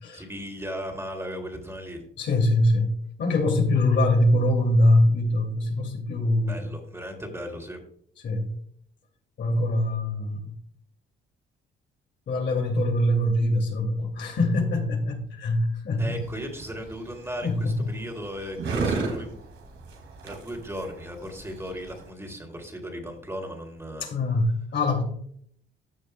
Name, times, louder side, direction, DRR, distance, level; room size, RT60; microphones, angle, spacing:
voice 1, 0.1-2.0 6.5-7.8 16.0-19.4 20.2-24.0, equal, 15° right, 3 dB, 2.8 m, -36 dB
voice 2, 2.2-2.9 3.2-6.7 8.2-8.5 9.4-10.4 12.3-16.2 17.4-17.8 24.0-25.0, left 1 dB, 65° left, 2 dB, 2.6 m, -23 dB
sound 1, 16.0-22.1, right 4 dB, 75° right, 2.4 m, -34 dB
14.0 x 6.9 x 2.2 m, 0.66 s
cardioid pair, 90°, 20 cm